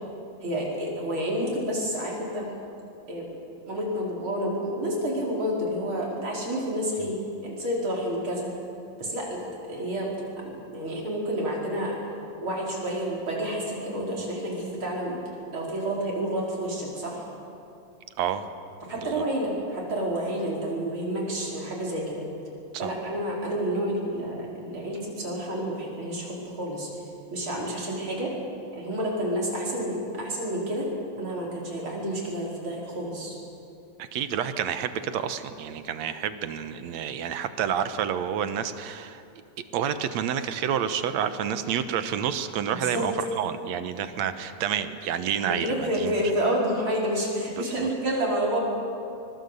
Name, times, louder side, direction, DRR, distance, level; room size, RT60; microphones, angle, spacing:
voice 1, 0.4-2.5 3.1-3.3 3.7-8.5 9.0-10.1 10.5-12.0 12.4-17.2 18.9-22.2 22.8-27.0 27.3-28.3 28.7-30.9 31.2-33.4 42.7-43.1 45.5-48.6, equal, 45° right, -3 dB, 5.6 m, -29 dB
voice 2, 18.2-18.5 19.0-19.2 22.7-22.9 34.0-39.2 39.7-46.2 47.6-47.9, right 8 dB, 75° right, 11 dB, 2.2 m, -29 dB
24.5 x 22.0 x 8.2 m, 2.6 s
omnidirectional pair, 3.3 m